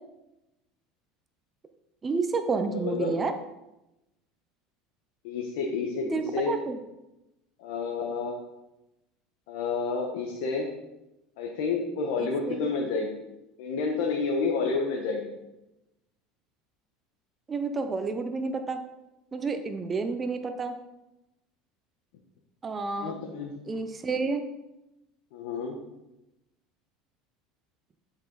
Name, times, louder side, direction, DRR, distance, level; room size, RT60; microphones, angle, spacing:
voice 1, 2.0-3.3 6.1-6.8 12.2-12.7 17.5-18.8 19.3-20.7 22.6-23.2 23.7-24.4, right 4 dB, 20° right, 7 dB, 0.7 m, -30 dB
voice 2, 2.7-3.1 5.2-6.6 7.6-8.4 9.5-10.7 11.4-13.2 13.6-15.3 23.0-23.5 25.3-25.8, left 4 dB, 80° left, 1 dB, 1.3 m, -30 dB
10.5 x 6.0 x 4.1 m, 0.93 s
supercardioid pair, 130°, 0 cm